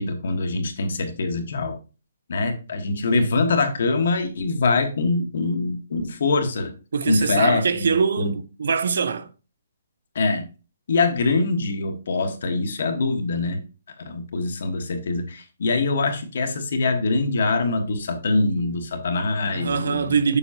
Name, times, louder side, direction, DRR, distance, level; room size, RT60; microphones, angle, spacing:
voice 1, 0.0-1.8 2.3-6.7 7.1-8.3 10.1-10.4 10.9-13.6 14.0-20.2, left 3 dB, 55° left, 1.3 m, -24 dB
voice 2, 6.9-9.3 19.5-20.4, right 6 dB, 65° right, 0.6 m, -23 dB
7.0 x 6.0 x 2.8 m
hypercardioid pair, 175°, 0 cm